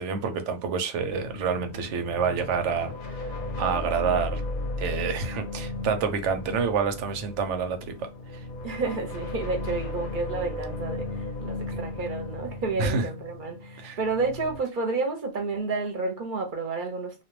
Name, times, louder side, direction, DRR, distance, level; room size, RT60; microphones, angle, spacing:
voice 1, 0.0-4.4 4.8-8.1 8.3-8.4 12.8-13.0 13.8-14.0, right 6 dB, 90° right, 0.9 m, -28 dB
sound 1, 1.1-14.6, left 2 dB, 60° left, 0.6 m, -35 dB
voice 2, 8.6-17.2, right 3 dB, 55° right, 0.6 m, -30 dB
2.2 x 2.2 x 3.0 m
omnidirectional pair, 1.2 m